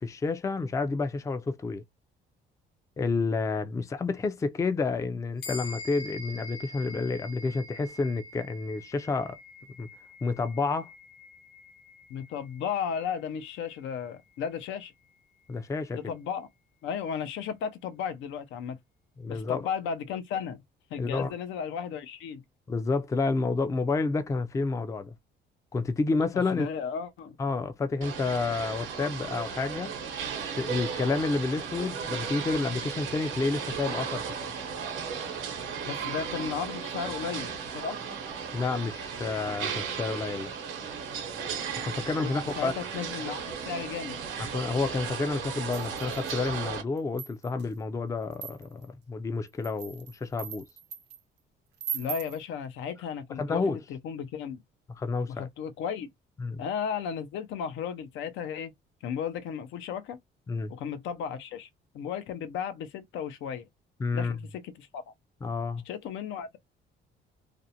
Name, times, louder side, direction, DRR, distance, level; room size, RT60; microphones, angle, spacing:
voice 1, 0.0-1.8 3.0-9.4 9.8-9.9 10.2-10.9 15.5-16.1 19.2-19.7 21.0-21.3 22.7-25.1 25.7-26.7 27.4-29.9 30.5-34.5 38.5-40.5 41.8-42.7 44.5-50.7 53.4-53.8 55.0-55.5 56.4-56.6 60.5-60.7 64.0-64.4 65.4-65.8, left 4 dB, 15° left, 0.3 m, -30 dB
sound 1, 5.4-15.1, left 2 dB, 55° left, 0.9 m, -46 dB
voice 2, 12.1-14.9 15.9-16.5 16.8-18.8 19.3-20.6 20.9-22.4 26.5-27.4 35.8-38.0 42.2-44.2 51.9-54.6 55.3-56.1 56.6-58.7 59.0-60.2 60.7-61.7 61.9-63.7 64.1-65.0 65.9-66.6, left 7 dB, 80° left, 0.5 m, -34 dB
sound 2, 28.0-46.8, right 6 dB, 85° right, 0.8 m, -35 dB
sound 3, 45.7-46.5 47.0-47.7 48.3-48.9 49.5-51.2 51.8-52.4, right 9 dB, 60° right, 0.5 m, -39 dB
2.5 x 2.1 x 2.7 m
cardioid pair, 100°, 19 cm